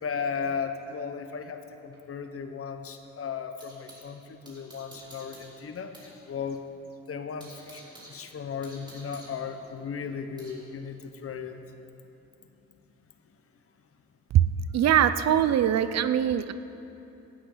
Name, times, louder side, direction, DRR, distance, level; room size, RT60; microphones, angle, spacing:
voice 1, 0.0-6.6 7.1-7.8 8.1-11.6, left 6 dB, 50° left, 7 dB, 1.1 m, -36 dB
sound 1, 0.9-4.1 4.4-6.2 6.5-6.6 7.0-10.6, right 1 dB, 15° right, 3.8 m, -52 dB
voice 2, 14.7-16.5, right 10 dB, 60° right, 12 dB, 0.6 m, -22 dB
17.5 x 12.5 x 4.0 m, 2.9 s
cardioid pair, 90°, 30 cm